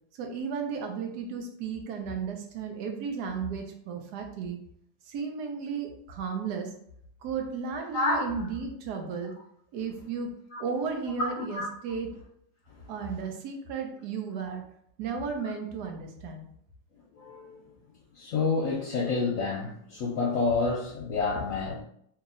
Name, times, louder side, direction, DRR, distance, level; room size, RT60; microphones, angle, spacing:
voice 1, 0.2-4.6 5.1-6.7 7.2-9.3 9.7-10.3 10.6-12.1 12.9-14.6 15.0-16.5, right 5 dB, 75° right, 4 dB, 1.2 m, -34 dB
voice 2, 7.9-8.4 10.5-10.6 11.3-11.7 12.8-12.9 17.1-17.6 18.1-21.8, left 3 dB, 65° left, -4 dB, 0.9 m, -29 dB
3.0 x 2.8 x 3.7 m, 0.69 s
omnidirectional pair, 1.8 m